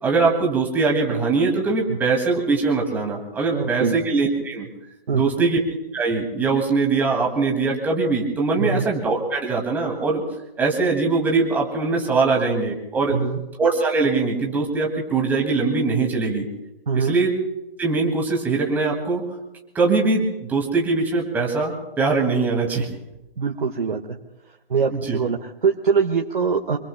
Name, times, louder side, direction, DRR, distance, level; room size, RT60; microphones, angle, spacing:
voice 1, 0.0-4.7 5.1-5.6 5.9-10.2 10.6-13.2 13.6-16.5 16.9-17.3 17.8-19.2 19.7-22.9 24.9-25.2, right 4 dB, 5° right, 0 dB, 2.2 m, -22 dB
voice 2, 3.5-4.0 5.1-5.5 8.6-8.9 13.1-13.4 16.9-17.2 23.4-24.2 24.7-26.8, right 5 dB, 60° right, 3 dB, 1.6 m, -23 dB
26.5 x 24.5 x 2.2 m, 0.95 s
figure-of-eight pair, 150°, 29 cm